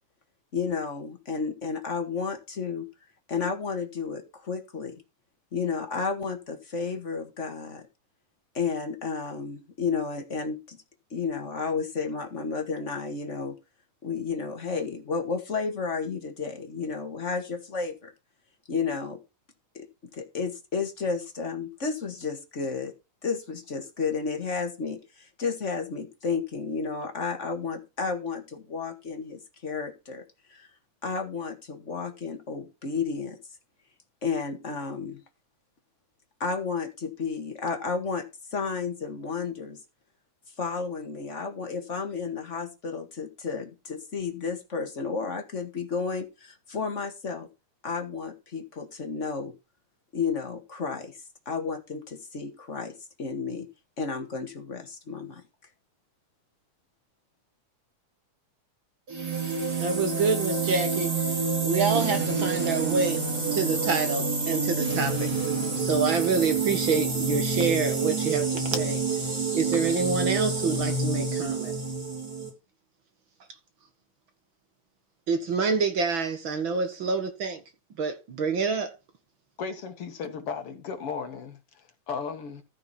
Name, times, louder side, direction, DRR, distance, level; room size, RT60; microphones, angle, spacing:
voice 1, 0.5-2.9 3.3-4.9 5.5-7.8 8.5-10.8 11.1-13.5 14.0-18.1 18.7-19.2 19.7-19.8 20.1-22.9 23.2-30.2 30.5-30.7 31.0-33.4 34.2-35.2 36.4-38.2 38.5-39.8 40.6-47.5 47.8-49.5 50.1-51.2 51.4-52.9 53.2-53.7 54.0-55.4, left 5 dB, 30° left, 1.6 m, -32 dB
sound 1, 59.1-72.5, right 4 dB, 30° right, 4.7 m, -28 dB
voice 2, 59.8-65.3 65.8-69.0 69.5-71.7 75.3-77.6 78.0-78.9, right 4 dB, 50° right, 1.8 m, -27 dB
voice 3, 79.6-82.6, left 5 dB, 50° left, 2.2 m, -35 dB
14.5 x 6.1 x 4.4 m
omnidirectional pair, 3.6 m